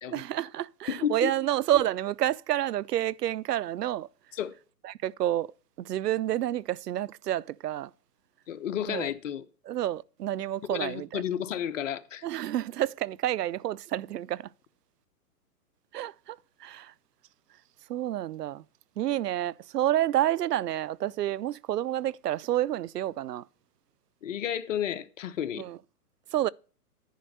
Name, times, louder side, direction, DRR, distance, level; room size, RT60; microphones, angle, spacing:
voice 1, 0.1-4.1 4.8-5.5 5.8-7.9 8.9-9.1 9.7-11.2 12.2-14.5 15.9-16.9 17.9-18.6 19.0-23.4 25.6-25.8 26.3-26.5, right 13 dB, 80° right, 0.5 m, -29 dB
voice 2, 0.9-1.3 4.3-4.5 8.5-9.4 10.7-12.2 24.2-25.7, left 9 dB, 50° left, 0.9 m, -32 dB
10.5 x 5.1 x 6.7 m
hypercardioid pair, 135°, 47 cm